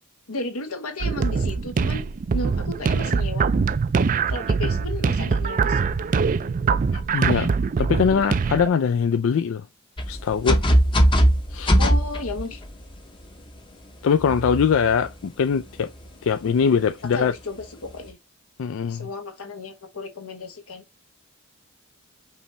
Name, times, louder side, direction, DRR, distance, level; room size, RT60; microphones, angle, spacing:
voice 1, 0.3-2.1 2.3-3.5 4.3-5.9 11.8-12.6 17.1-18.2 18.9-20.8, left 2 dB, 90° left, 1.2 m, -33 dB
sound 1, 1.0-8.7, right 5 dB, 40° right, 0.4 m, -23 dB
voice 2, 6.9-9.7 10.1-10.6 11.5-11.8 14.0-15.9 16.2-17.3 18.6-19.1, left 6 dB, 65° left, 0.4 m, -22 dB
sound 2, 10.0-13.0 14.2-15.1 15.8-16.1 17.6-17.9, equal, 25° left, 0.7 m, -20 dB
5.4 x 2.8 x 3.1 m
head